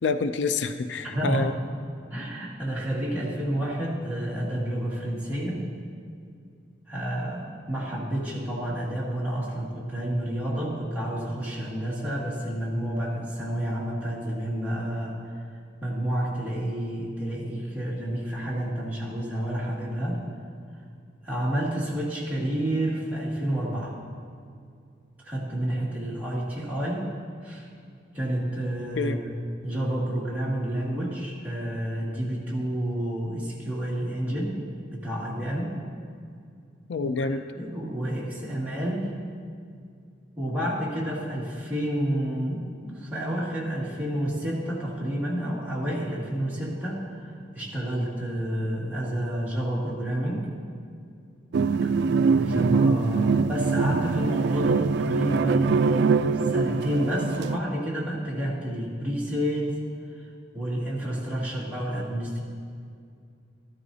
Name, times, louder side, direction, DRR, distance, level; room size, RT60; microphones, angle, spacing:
voice 1, 0.0-1.5 29.0-29.2 36.9-37.4, left 4 dB, 80° left, 10 dB, 0.4 m, -27 dB
voice 2, 1.0-1.5 2.1-5.7 6.9-15.2 15.8-20.2 21.2-24.0 25.2-27.1 27.4-27.7 28.1-29.4 29.6-34.5 34.9-35.8 37.0-39.1 40.4-50.5 51.8-51.9 52.3-59.8 60.5-62.4, right 1 dB, 10° right, -7 dB, 2.2 m, -29 dB
sound 1, 51.5-57.6, right 4 dB, 65° right, 0.3 m, -23 dB
13.5 x 12.5 x 2.8 m, 2.3 s
head